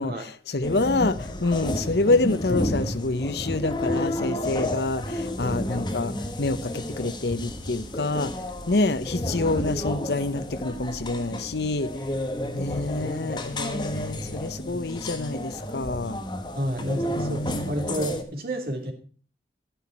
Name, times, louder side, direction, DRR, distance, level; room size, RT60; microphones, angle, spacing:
voice 1, 0.0-8.3 8.7-11.9 12.5-16.2 17.1-17.8, left 2 dB, 70° left, 0.9 m, -27 dB
sound 1, 0.6-18.2, left 1 dB, 25° left, 1.3 m, -31 dB
voice 2, 16.5-18.9, equal, 55° right, 2.9 m, -30 dB
11.0 x 10.0 x 4.3 m
head